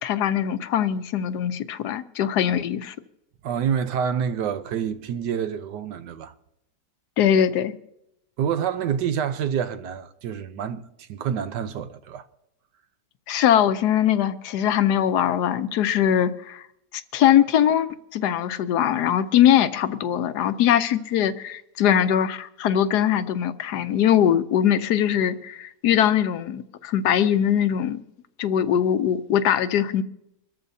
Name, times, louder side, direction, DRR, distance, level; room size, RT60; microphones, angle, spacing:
voice 1, 0.0-2.9 7.2-7.7 13.3-16.6 16.9-28.0 28.4-30.0, left 10 dB, 75° left, 1.2 m, -21 dB
voice 2, 3.4-6.3 8.4-12.3, right 8 dB, 85° right, 1.4 m, -27 dB
25.0 x 13.5 x 2.7 m
omnidirectional pair, 1.8 m